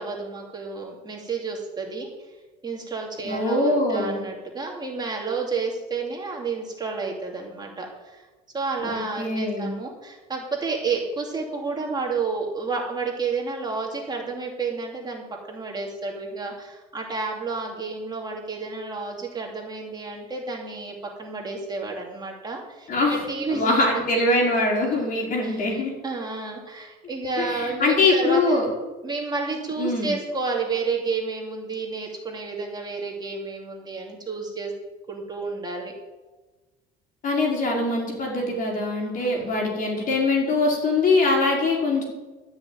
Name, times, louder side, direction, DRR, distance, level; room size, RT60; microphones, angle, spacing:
voice 1, 0.0-2.1 2.6-8.2 8.5-24.0 25.4-28.7 29.0-34.7 35.1-35.9 39.2-39.5, right 4 dB, 20° right, -1 dB, 2.7 m, -31 dB
voice 2, 3.2-4.2 8.8-9.7 22.9-23.2 23.5-25.9 27.4-28.7 29.8-30.1 37.2-42.0, left 2 dB, 40° left, -1 dB, 5.1 m, -23 dB
13.0 x 6.4 x 9.3 m, 1.2 s
cardioid pair, 120°, 21 cm